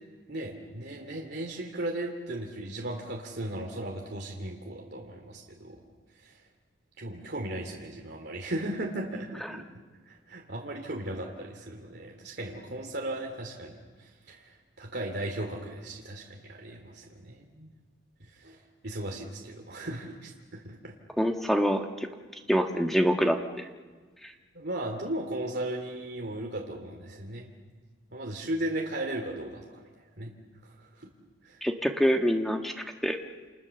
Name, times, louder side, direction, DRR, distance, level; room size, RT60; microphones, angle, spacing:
voice 1, 0.3-5.8 6.2-6.4 7.0-9.6 10.1-17.7 18.3-20.9 24.5-27.5 28.1-29.9 30.2-30.3 30.8-31.1 31.4-31.6, right 1 dB, 55° right, 1 dB, 2.8 m, -36 dB
voice 2, 21.2-21.9 22.5-23.6 31.6-32.7 33.0-33.2, equal, ahead, 4 dB, 1.5 m, -25 dB
29.5 x 28.5 x 7.1 m, 1.4 s
head